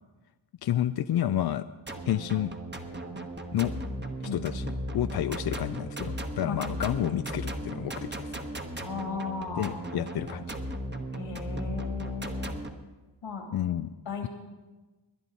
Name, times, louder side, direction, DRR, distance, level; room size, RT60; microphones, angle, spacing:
voice 1, 0.6-1.7 2.1-2.5 3.5-3.7 4.2-4.7 4.9-8.3 9.6-10.4 13.5-13.9, left 11 dB, 55° left, 11 dB, 0.5 m, -29 dB
sound 1, 1.9-12.7, right 1 dB, 20° right, 1.2 m, -36 dB
voice 2, 8.8-9.8 11.1-12.6 13.2-13.5 14.1-14.3, left 5 dB, 80° left, 2 dB, 2.8 m, -35 dB
20.0 x 10.5 x 4.0 m, 1.2 s
cardioid pair, 70°, 47 cm